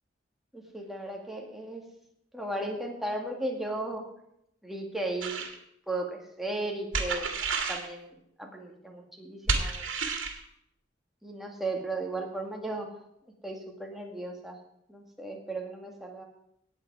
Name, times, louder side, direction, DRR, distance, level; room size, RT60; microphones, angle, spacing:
voice 1, 0.5-1.8 2.3-4.0 4.6-5.5 5.9-7.3 7.7-9.8 11.2-12.9 13.4-14.6 14.9-16.3, right 2 dB, ahead, 0 dB, 2.1 m, -35 dB
sound 1, 5.2-5.5 6.9-7.9 9.5-10.4, right 4 dB, 75° right, 2.1 m, -30 dB
18.0 x 8.0 x 4.8 m, 0.76 s
head